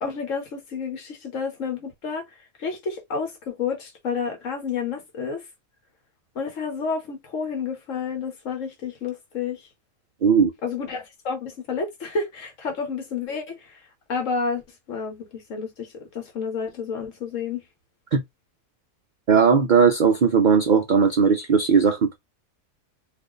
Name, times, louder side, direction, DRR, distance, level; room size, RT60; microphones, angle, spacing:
voice 1, 0.0-2.3 2.6-5.4 6.3-9.6 10.6-13.8 14.1-17.6, left 5 dB, 65° left, 1.3 m, -30 dB
voice 2, 19.3-22.2, right 6 dB, 70° right, 0.4 m, -18 dB
2.6 x 2.4 x 3.8 m
omnidirectional pair, 1.4 m